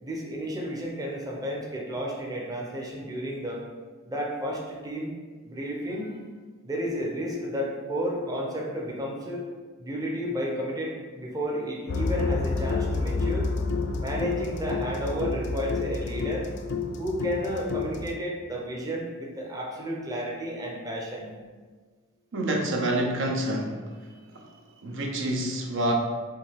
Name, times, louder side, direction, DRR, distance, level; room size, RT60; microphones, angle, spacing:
voice 1, 0.0-3.6 4.1-5.1 5.4-6.2 6.6-9.4 9.8-13.5 14.0-16.5 17.0-21.3 24.1-24.2, equal, 15° right, -2 dB, 0.7 m, -32 dB
sound 1, 11.9-18.2, left 4 dB, 55° left, 0.3 m, -29 dB
voice 2, 22.3-23.8 24.3-24.5 24.8-25.9, right 1 dB, 60° right, 1 dB, 0.6 m, -27 dB
5.4 x 2.8 x 3.5 m, 1.5 s
head